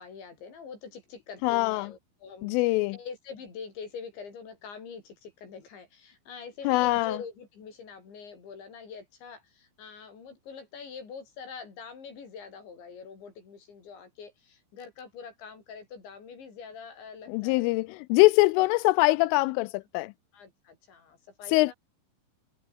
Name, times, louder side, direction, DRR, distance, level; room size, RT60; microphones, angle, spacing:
voice 1, 0.0-17.7 20.3-21.7, left 6 dB, 60° left, 8.5 m, -44 dB
voice 2, 1.4-1.9 2.4-3.0 6.7-7.2 17.3-20.1 21.5-21.7, left 22 dB, 85° left, 2.9 m, -23 dB
omnidirectional pair, 6.0 m